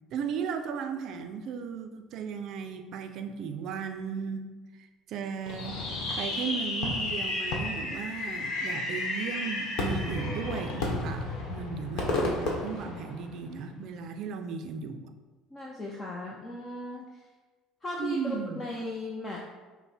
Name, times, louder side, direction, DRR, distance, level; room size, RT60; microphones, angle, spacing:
voice 1, 0.1-4.5 5.1-5.8 6.2-15.1 18.0-18.6, right 6 dB, 55° right, 7 dB, 0.4 m, -36 dB
Fireworks, 5.5-13.6, left 2 dB, 65° left, 1.0 m, -32 dB
voice 2, 15.5-17.2 17.8-19.4, left 2 dB, 20° left, -3 dB, 0.5 m, -37 dB
5.6 x 2.1 x 4.2 m, 1.3 s
cardioid pair, 135°, 0 cm